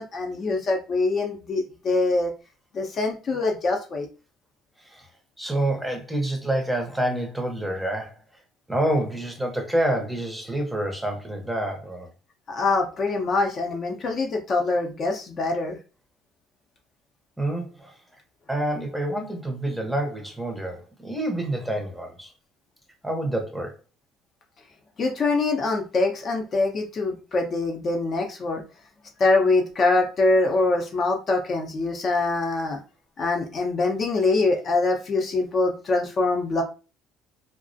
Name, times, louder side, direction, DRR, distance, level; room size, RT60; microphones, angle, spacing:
voice 1, 0.0-2.3 2.7-4.1 12.5-15.8 25.0-28.6 29.2-32.8 33.2-36.6, left 3 dB, 40° left, 0.5 m, -24 dB
voice 2, 5.4-8.2 8.7-12.1 17.4-17.9 18.5-22.3 23.0-23.7, right 1 dB, 5° right, 0.6 m, -27 dB
2.4 x 2.0 x 2.5 m
cardioid pair, 110°, 0 cm